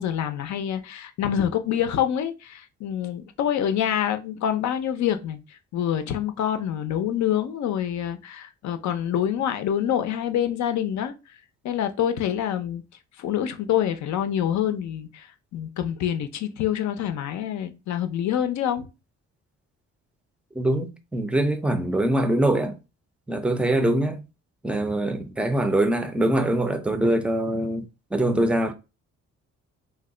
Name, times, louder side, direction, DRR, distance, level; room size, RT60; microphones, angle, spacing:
voice 1, 0.0-5.4 5.7-11.1 11.6-12.8 13.2-15.3 15.5-18.9, left 10 dB, 70° left, 0.5 m, -26 dB
voice 2, 20.6-22.7 23.3-24.2 24.6-27.9 28.1-28.7, right 1 dB, 5° right, 0.4 m, -23 dB
2.8 x 2.1 x 3.7 m
cardioid pair, 90°, 30 cm